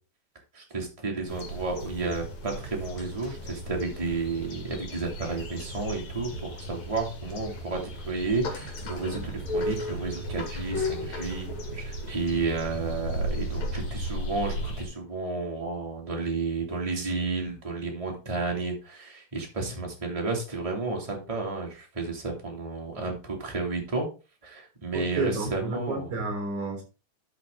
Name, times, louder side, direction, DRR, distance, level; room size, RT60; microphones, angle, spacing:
voice 1, 0.5-24.1 24.4-26.1, right 3 dB, 15° right, 0 dB, 1.4 m, -32 dB
sound 1, 1.3-14.9, equal, 45° left, 3.2 m, -35 dB
voice 2, 24.9-26.8, right 3 dB, 45° right, 2 dB, 4.8 m, -31 dB
12.5 x 5.5 x 3.8 m, 0.32 s
omnidirectional pair, 4.9 m